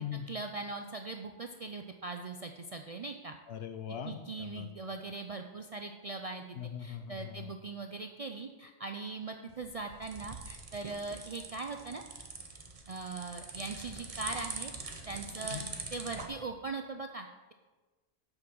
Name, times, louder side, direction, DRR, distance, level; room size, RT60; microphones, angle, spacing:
voice 1, 0.3-3.4 4.1-12.0 12.9-15.6 15.9-17.5, right 3 dB, 55° right, 5 dB, 0.4 m, -40 dB
voice 2, 3.5-4.7 6.5-7.5 15.4-15.8, left 8 dB, 70° left, 9 dB, 0.9 m, -41 dB
sound 1, 9.5-16.3, right 3 dB, 35° right, 0.9 m, -44 dB
7.7 x 6.0 x 6.2 m, 1.3 s
omnidirectional pair, 1.1 m